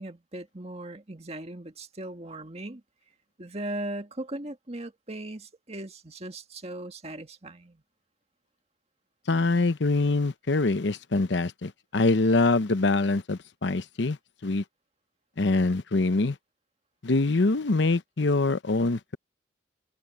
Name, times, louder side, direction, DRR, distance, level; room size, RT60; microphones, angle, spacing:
voice 1, 0.0-2.8 3.4-7.8, right 1 dB, 35° right, 1.8 m, -38 dB
voice 2, 9.3-14.2 14.4-14.6 15.4-16.4 17.0-19.2, left 3 dB, 70° left, 0.8 m, -24 dB
head